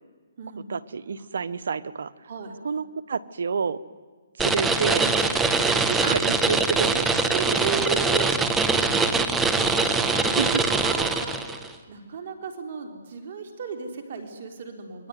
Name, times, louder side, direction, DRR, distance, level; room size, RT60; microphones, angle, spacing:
voice 1, 0.6-2.1 2.6-3.8 4.4-5.1 5.8-7.6 10.1-10.6, right 5 dB, 70° right, 17 dB, 1.3 m, -29 dB
voice 2, 2.2-2.6 7.3-8.7 9.7-11.4 11.9-15.1, right 5 dB, 55° right, 5 dB, 3.9 m, -35 dB
sound 1, 4.4-11.7, right 3 dB, 10° right, 1.6 m, -23 dB
27.0 x 22.5 x 9.5 m, 1.5 s
hypercardioid pair, 150°, 0 cm